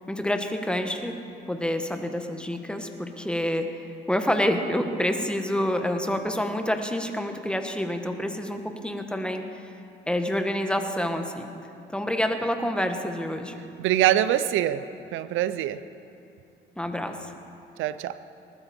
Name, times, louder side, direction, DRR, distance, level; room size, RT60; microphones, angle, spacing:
voice 1, 0.1-1.2 1.5-3.7 4.1-9.6 10.1-11.5 11.9-13.6 16.8-17.2, left 1 dB, 5° left, 5 dB, 1.3 m, -27 dB
voice 2, 13.8-14.9 15.1-15.8 17.8-18.2, right 12 dB, 85° right, 14 dB, 0.5 m, -24 dB
19.5 x 13.0 x 4.3 m, 2.7 s
cardioid pair, 90°, 20 cm